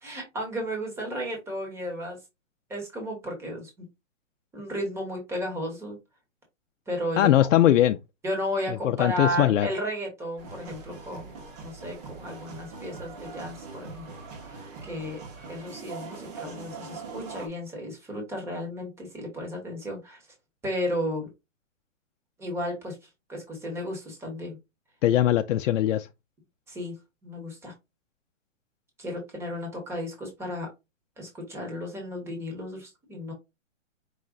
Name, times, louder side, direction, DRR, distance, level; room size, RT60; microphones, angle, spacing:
voice 1, 0.0-2.2 2.7-3.7 4.5-6.0 6.9-7.5 8.2-11.3 11.6-14.1 14.4-15.2 15.5-20.2 20.6-21.3 22.4-23.0 23.3-24.6 26.7-26.9 27.2-27.7 29.0-30.7 31.2-33.3, equal, 5° right, 1.0 m, -33 dB
voice 2, 7.2-8.0 8.8-9.7 25.0-26.1, left 12 dB, 75° left, 0.5 m, -21 dB
sound 1, 10.4-17.5, right 4 dB, 30° right, 1.0 m, -42 dB
4.9 x 2.1 x 3.8 m
hypercardioid pair, 150°, 38 cm